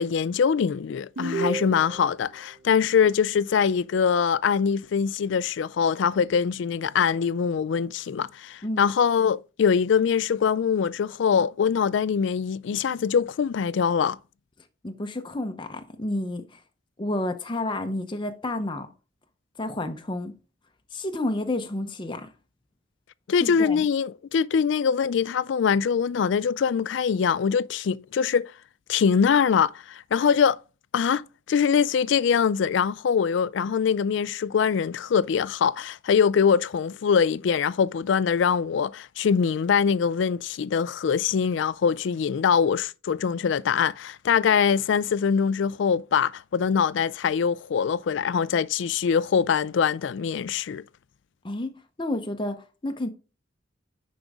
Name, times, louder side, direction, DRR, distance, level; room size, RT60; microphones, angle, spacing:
voice 1, 0.0-14.2 23.3-28.5 28.9-30.6 30.9-50.8, left 6 dB, 65° left, 0.3 m, -23 dB
sound 1, 1.2-2.2, right 3 dB, 70° right, 1.1 m, -30 dB
voice 2, 14.8-16.6 17.0-18.9 19.6-20.3 20.9-22.3 23.4-23.8 51.4-53.1, left 1 dB, 25° left, 0.7 m, -30 dB
9.9 x 5.1 x 3.5 m
head